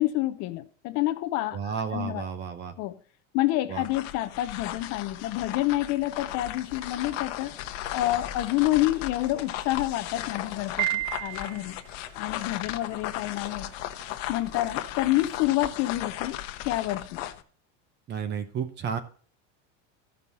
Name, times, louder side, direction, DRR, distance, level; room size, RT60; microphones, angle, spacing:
voice 1, 0.0-2.2 2.8-2.9 3.3-7.5 7.9-11.8 12.1-13.7 14.3-16.4 16.7-17.2, left 16 dB, 45° left, 0.6 m, -28 dB
voice 2, 1.5-2.7 3.7-3.8 18.1-19.0, right 7 dB, 30° right, 0.8 m, -32 dB
sound 1, 3.7-17.4, left 13 dB, 75° left, 0.9 m, -36 dB
sound 2, 6.2-15.5, right 4 dB, 55° right, 2.6 m, -55 dB
Piano, 10.8-11.8, right 20 dB, 75° right, 0.5 m, -30 dB
14.0 x 5.4 x 4.1 m
cardioid pair, 160°, 37 cm